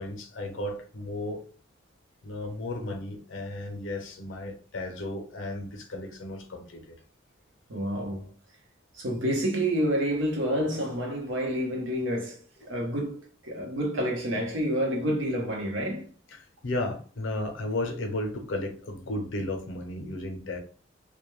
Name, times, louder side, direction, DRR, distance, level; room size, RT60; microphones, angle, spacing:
voice 1, 0.0-1.4 2.2-7.0 12.6-12.7 16.3-20.6, left 1 dB, 70° left, 0.6 m, -34 dB
voice 2, 7.7-8.3 8.9-12.4 12.7-16.1, equal, 70° right, 0.8 m, -28 dB
2.2 x 2.1 x 3.0 m
head